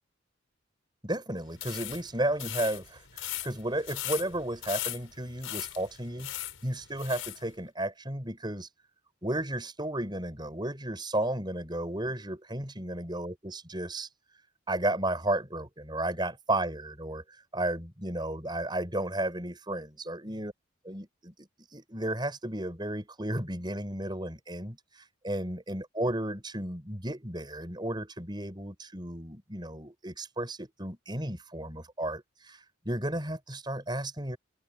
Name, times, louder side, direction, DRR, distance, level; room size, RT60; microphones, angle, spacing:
voice 1, 1.0-6.3 6.6-8.7 9.2-14.1 14.7-17.2 17.5-20.5 20.8-34.4, right 1 dB, 20° right, 6.1 m, -33 dB
sound 1, 1.5-7.4, left 13 dB, 75° left, 5.4 m, -38 dB
open air
head